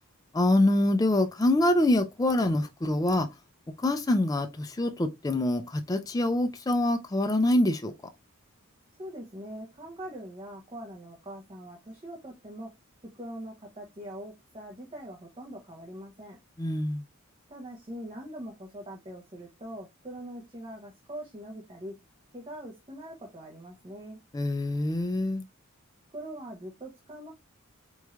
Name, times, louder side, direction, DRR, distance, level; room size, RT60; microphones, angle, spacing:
voice 1, 0.3-3.3 3.8-7.9 16.6-17.0 24.3-25.4, left 1 dB, 15° left, 0.3 m, -25 dB
voice 2, 9.0-12.7 13.1-16.4 17.5-22.0 22.3-24.2 26.1-27.3, right 1 dB, 25° right, 0.7 m, -42 dB
4.3 x 3.1 x 2.3 m
head